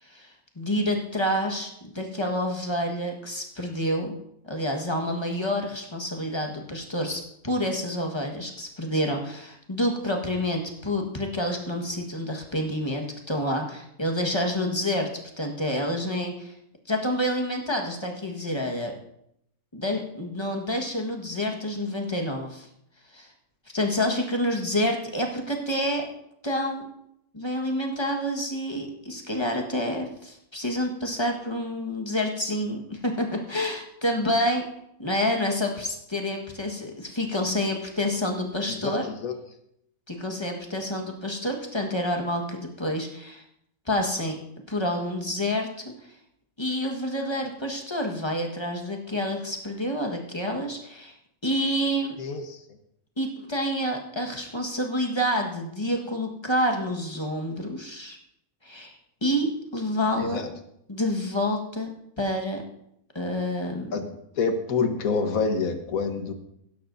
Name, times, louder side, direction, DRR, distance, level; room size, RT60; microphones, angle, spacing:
voice 1, 0.0-4.1 4.4-15.1 15.4-16.5 16.9-18.9 19.7-22.7 23.1-23.3 23.7-26.0 26.4-26.8 27.3-34.6 35.0-39.1 40.1-43.4 43.9-44.4 44.7-45.7 46.6-51.1 51.4-52.1 53.2-58.2 58.6-59.0 59.2-60.4 60.9-61.9 62.2-62.6 63.1-63.9, equal, 20° left, 1 dB, 1.5 m, -28 dB
voice 2, 38.7-39.4 52.2-52.6 60.2-60.5 63.9-64.0 64.3-66.3, left 4 dB, 75° left, 7 dB, 1.6 m, -27 dB
16.5 x 12.0 x 2.7 m, 0.75 s
omnidirectional pair, 1.5 m